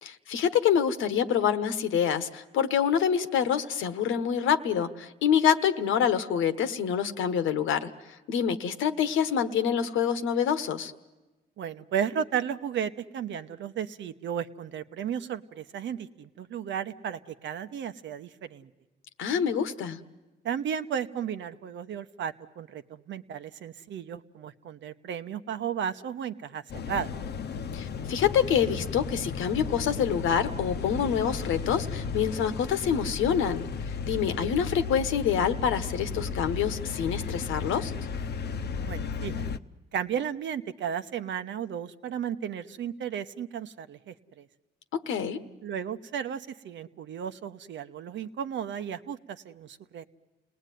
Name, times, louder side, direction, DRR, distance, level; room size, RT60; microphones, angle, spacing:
voice 1, 0.0-10.9 19.2-20.0 27.7-37.9 44.9-45.4, left 8 dB, 85° left, 10 dB, 1.3 m, -26 dB
voice 2, 11.6-18.7 20.4-27.1 38.8-39.4 39.9-44.5 45.6-50.1, right 8 dB, 65° right, 10 dB, 1.1 m, -34 dB
sound 1, 26.7-39.6, left 5 dB, 55° left, 0.9 m, -34 dB
29.0 x 19.0 x 9.3 m, 1.2 s
cardioid pair, 90°, 20 cm